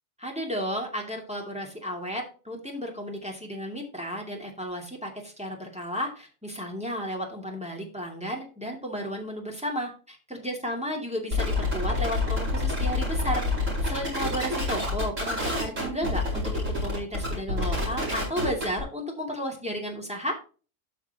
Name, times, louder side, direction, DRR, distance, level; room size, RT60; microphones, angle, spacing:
voice 1, 0.2-13.4 13.8-20.4, equal, 5° right, 0 dB, 2.4 m, -33 dB
sound 1, 11.3-18.8, left 2 dB, 70° right, 5.0 m, -27 dB
12.5 x 5.8 x 2.9 m, 0.36 s
omnidirectional pair, 1.4 m